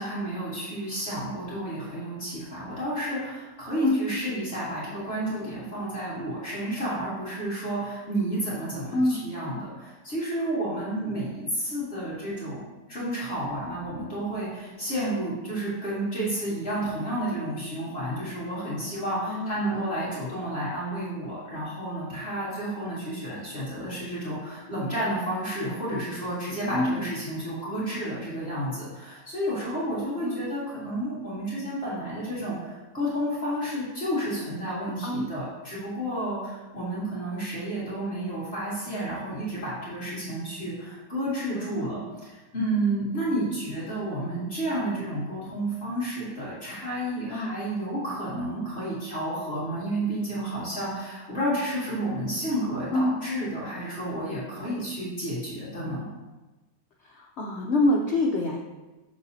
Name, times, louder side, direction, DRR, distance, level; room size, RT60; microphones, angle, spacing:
voice 1, 0.0-12.6 12.9-56.0, right 1 dB, 35° left, -9 dB, 2.1 m, -31 dB
voice 2, 19.2-19.9 26.6-27.1 30.2-30.4 35.0-35.3 41.5-42.1 47.3-47.5 52.9-53.2 57.0-58.6, left 1 dB, 70° left, -1 dB, 0.6 m, -26 dB
6.8 x 6.6 x 2.7 m, 1.1 s
omnidirectional pair, 1.9 m